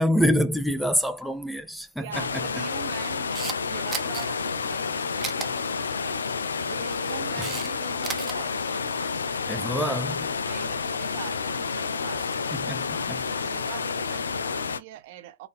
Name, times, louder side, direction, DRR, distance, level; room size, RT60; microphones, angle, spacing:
voice 1, 0.0-2.4 7.4-7.5 9.5-10.3 12.7-13.2, equal, ahead, 0.4 m, -26 dB
voice 2, 2.0-6.2 6.7-8.9 10.4-12.3 13.2-15.5, right 13 dB, 55° right, 0.7 m, -43 dB
sound 1, 2.1-14.8, left 5 dB, 90° left, 0.4 m, -30 dB
Camera, 3.1-3.6 3.9-4.2 5.2-5.5 6.8-7.7 7.9-8.3, right 6 dB, 20° right, 0.8 m, -33 dB
Keyboard (musical), 6.8-8.8, left 1 dB, 60° left, 1.1 m, -44 dB
3.6 x 2.6 x 3.4 m
hypercardioid pair, 115°, 0 cm